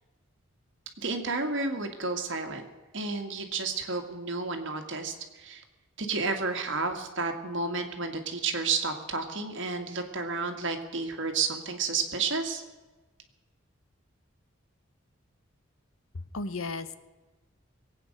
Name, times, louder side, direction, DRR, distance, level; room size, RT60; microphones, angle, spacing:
voice 1, 1.0-2.7 2.9-5.6 6.0-12.6, right 4 dB, 60° right, 4 dB, 1.9 m, -31 dB
voice 2, 16.1-17.0, left 3 dB, 80° left, 13 dB, 0.9 m, -35 dB
21.5 x 8.9 x 6.6 m, 1.2 s
head